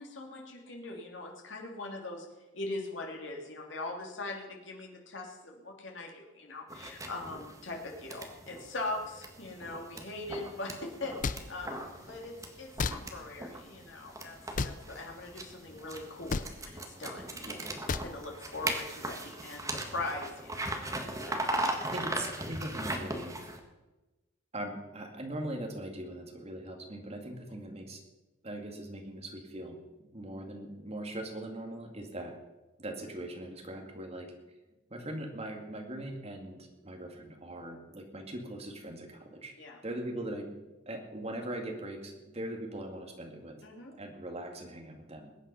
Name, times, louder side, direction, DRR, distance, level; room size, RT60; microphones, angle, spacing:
voice 1, 0.0-2.3 2.5-14.4 14.6-17.5 18.0-20.8 21.2-21.4 39.6-39.8 43.6-43.9, left 2 dB, 70° left, 1 dB, 2.8 m, -41 dB
sound 1, 6.7-23.6, right 1 dB, 15° right, 1.6 m, -39 dB
sound 2, 11.2-11.4 12.8-13.0 14.5-14.8 16.3-16.5 17.9-18.1, left 4 dB, 45° left, 0.5 m, -31 dB
voice 2, 21.9-23.4 24.5-28.0 28.4-32.3 32.8-34.3 34.9-39.5 39.8-40.5 40.9-43.6 44.0-45.4, right 1 dB, 35° right, 3 dB, 2.2 m, -40 dB
21.0 x 9.1 x 5.7 m, 1.1 s
head